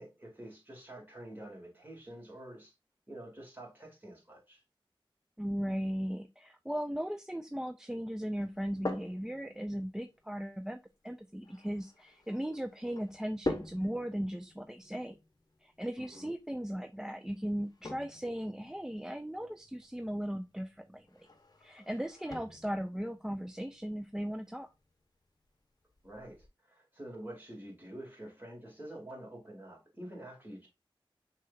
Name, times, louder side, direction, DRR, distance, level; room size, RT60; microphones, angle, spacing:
voice 1, 0.0-2.7 3.1-4.6 16.0-16.3 26.0-30.7, right 1 dB, 20° right, 2.2 m, -47 dB
voice 2, 5.4-10.8 11.0-15.2 15.6-21.3 21.6-24.7, equal, 5° right, 0.3 m, -37 dB
sound 1, 8.4-26.5, left 2 dB, 45° left, 0.8 m, -46 dB
6.1 x 2.9 x 2.5 m
wide cardioid pair, 50°, 9 cm